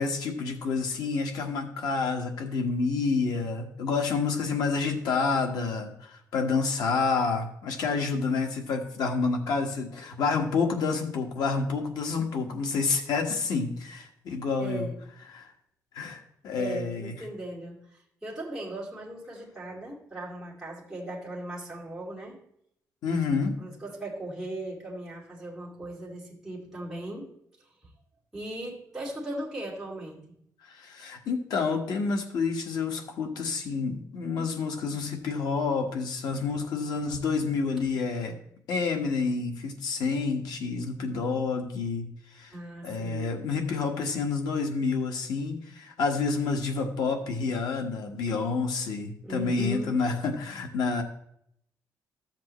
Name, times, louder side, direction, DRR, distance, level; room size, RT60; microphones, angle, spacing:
voice 1, 0.0-14.9 15.3-15.5 15.9-17.1 23.0-23.6 30.7-38.4 38.7-42.1 42.3-42.5 42.8-51.0, left 4 dB, 90° left, 3 dB, 1.5 m, -29 dB
voice 2, 14.6-15.0 16.6-22.4 23.6-27.3 28.3-30.4 42.5-43.4 49.2-49.9, right 1 dB, 5° right, -5 dB, 2.4 m, -38 dB
13.0 x 7.5 x 3.1 m, 0.71 s
wide cardioid pair, 170°, 7 cm